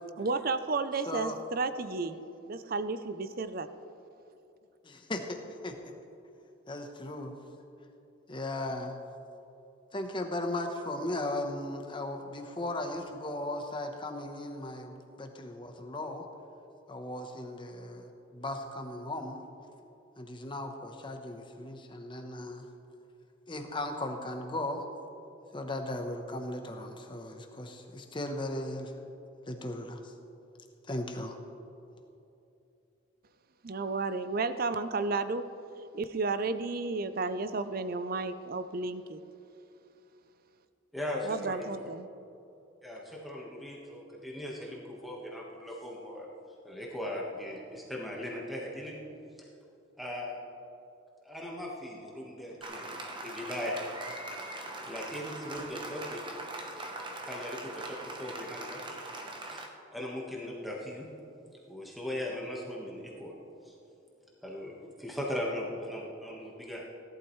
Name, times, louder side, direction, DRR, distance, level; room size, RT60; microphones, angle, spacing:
voice 1, 0.2-2.2 2.5-3.7 33.6-35.4 35.9-39.2 41.2-42.1, right 3 dB, 45° right, 11 dB, 0.5 m, -32 dB
voice 2, 1.1-1.4 4.8-5.8 6.7-7.3 8.3-8.9 9.9-16.2 16.9-19.4 20.2-22.6 23.5-24.9 25.5-28.9 29.5-30.0 30.9-31.4, left 1 dB, 25° left, 4 dB, 0.9 m, -37 dB
voice 3, 40.9-41.9 42.8-46.3 46.6-49.0 49.4-49.5 50.0-50.4 51.2-53.8 54.8-56.2 57.2-58.9 59.3-59.6 59.9-61.1 61.7-63.3 63.6-63.7 64.4-66.8, left 1 dB, ahead, -3 dB, 1.3 m, -39 dB
Applause, 52.6-59.7, right 2 dB, 25° right, 0.9 m, -41 dB
17.0 x 11.5 x 3.2 m, 2.8 s
head